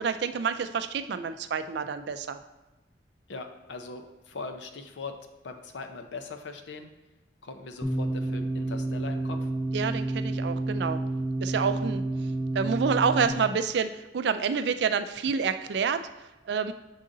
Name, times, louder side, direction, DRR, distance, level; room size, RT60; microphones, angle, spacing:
voice 1, 0.0-2.4 9.7-11.0 11.4-12.0 12.5-16.0 16.4-16.7, right 6 dB, 70° right, 11 dB, 0.4 m, -28 dB
voice 2, 3.3-5.1 5.4-6.9 7.4-9.5, left 3 dB, 85° left, 6 dB, 0.6 m, -40 dB
sound 1, 7.8-13.3, right 2 dB, 5° left, 0.7 m, -30 dB
6.3 x 3.9 x 3.8 m, 1.1 s
head